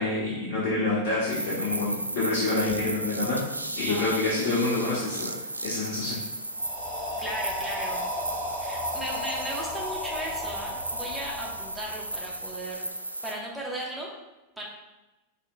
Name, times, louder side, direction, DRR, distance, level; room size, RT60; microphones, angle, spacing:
voice 1, 0.0-3.4 3.8-5.3 5.6-6.2, left 2 dB, 50° left, -8 dB, 1.3 m, -27 dB
sound 1, 1.3-13.3, right 1 dB, 85° right, 0.3 m, -35 dB
sound 2, 6.5-12.4, left 1 dB, 20° left, 1.4 m, -35 dB
voice 2, 7.2-8.1 8.6-12.8 13.2-14.1 14.6-14.7, right 1 dB, 5° right, -4 dB, 1.2 m, -36 dB
5.7 x 3.7 x 2.3 m, 1.0 s
figure-of-eight pair, 90°, 0 cm